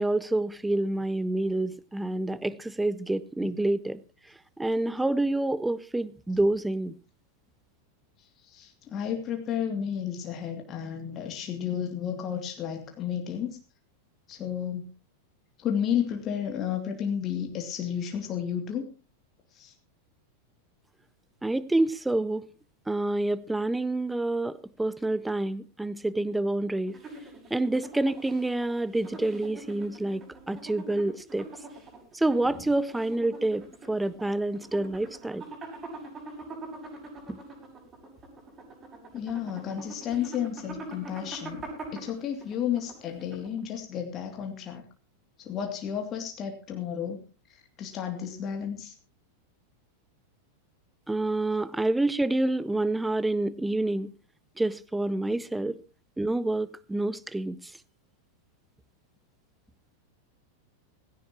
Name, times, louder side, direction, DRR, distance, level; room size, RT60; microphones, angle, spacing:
voice 1, 0.0-4.0 4.6-7.0 21.4-22.5 22.9-27.0 27.5-31.5 32.1-35.4 37.3-37.4 51.1-54.1 54.6-55.8 56.2-57.8, right 2 dB, 5° right, 0.9 m, -28 dB
voice 2, 8.2-13.5 14.3-14.9 15.6-18.9 19.5-19.7 32.4-32.5 39.1-41.7 41.9-44.8 45.4-47.2 47.8-48.9, left 8 dB, 30° left, 2.6 m, -32 dB
sound 1, 26.9-43.7, right 2 dB, 25° right, 6.8 m, -44 dB
17.0 x 16.5 x 3.0 m
figure-of-eight pair, 90°, 0 cm